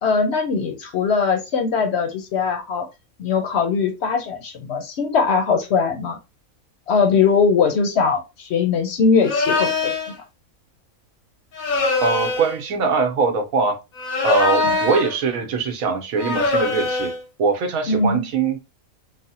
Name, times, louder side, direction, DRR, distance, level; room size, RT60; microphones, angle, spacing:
voice 1, 0.0-2.9 3.2-6.2 6.9-10.1 14.6-14.8 17.9-18.2, left 5 dB, 65° left, 0.7 m, -20 dB
sound 1, 9.2-10.1 11.5-12.6 13.9-15.2 16.2-17.2, left 3 dB, 85° left, 1.1 m, -22 dB
voice 2, 12.0-13.8 14.2-17.1 17.4-18.6, right 5 dB, 90° right, 1.2 m, -22 dB
3.3 x 2.0 x 2.7 m
omnidirectional pair, 1.4 m